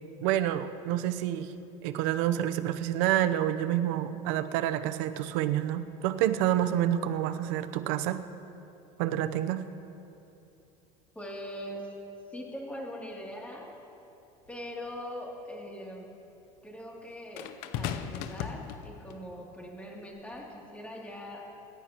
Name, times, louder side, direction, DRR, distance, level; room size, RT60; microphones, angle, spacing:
voice 1, 0.2-1.5 1.8-8.2 9.0-9.6, right 12 dB, 80° right, 9 dB, 0.8 m, -28 dB
voice 2, 11.1-11.9 12.3-13.7 14.5-16.1 16.6-17.5 17.7-21.4, equal, 10° left, -3 dB, 2.8 m, -41 dB
sound 1, 14.5-14.6 17.4-19.3 20.2-20.4, left 9 dB, 75° left, 0.8 m, -37 dB
26.5 x 11.5 x 3.0 m, 2.8 s
supercardioid pair, 115°, 16 cm